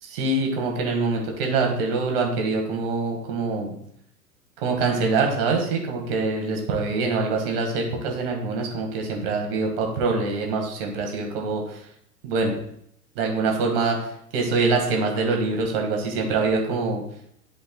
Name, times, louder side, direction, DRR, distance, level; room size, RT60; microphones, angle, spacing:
voice 1, 0.0-3.7 4.6-11.9 12.2-12.6 13.2-17.0, right 3 dB, 40° right, 1 dB, 1.7 m, -24 dB
11.0 x 5.2 x 2.2 m, 0.70 s
figure-of-eight pair, 105°, 45 cm